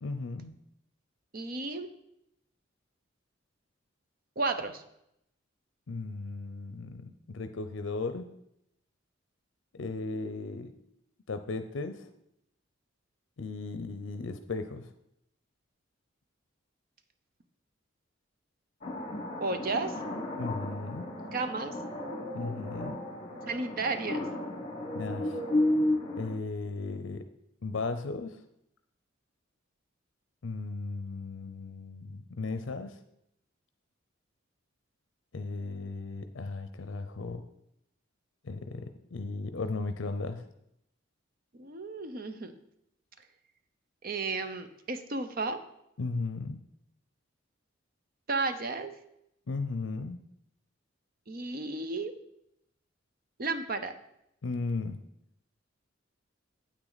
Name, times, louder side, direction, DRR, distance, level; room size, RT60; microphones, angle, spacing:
voice 1, 0.0-0.5 5.9-8.3 9.7-10.7 11.3-12.1 13.4-14.9 20.4-21.1 22.3-23.0 24.9-25.4 26.2-27.2 27.6-28.4 30.4-33.0 35.3-37.4 38.4-40.5 46.0-46.6 49.5-50.2 54.4-55.0, left 3 dB, 70° left, 9 dB, 0.5 m, -36 dB
voice 2, 1.3-1.9 4.4-4.8 19.4-19.9 21.3-21.7 23.5-24.3 41.5-42.5 44.0-45.6 48.3-48.9 51.3-52.1 53.4-53.9, right 3 dB, 50° right, 9 dB, 0.7 m, -33 dB
sound 1, 18.8-26.3, left 1 dB, 30° left, 1.4 m, -33 dB
9.0 x 8.6 x 4.0 m, 0.78 s
head